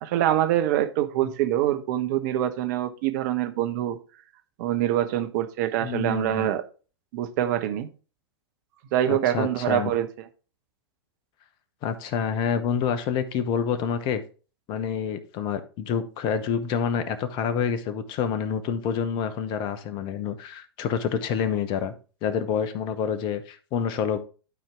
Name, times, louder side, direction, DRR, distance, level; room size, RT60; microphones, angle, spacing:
voice 1, 0.0-4.0 4.6-6.6 7.1-7.9 8.9-10.3, right 12 dB, 45° right, 10 dB, 1.0 m, -25 dB
voice 2, 5.8-6.5 9.1-9.9 11.8-14.2 14.7-21.9 22.2-24.2, left 7 dB, 35° left, 11 dB, 1.0 m, -27 dB
12.0 x 4.5 x 3.6 m, 0.36 s
figure-of-eight pair, 100°, 13 cm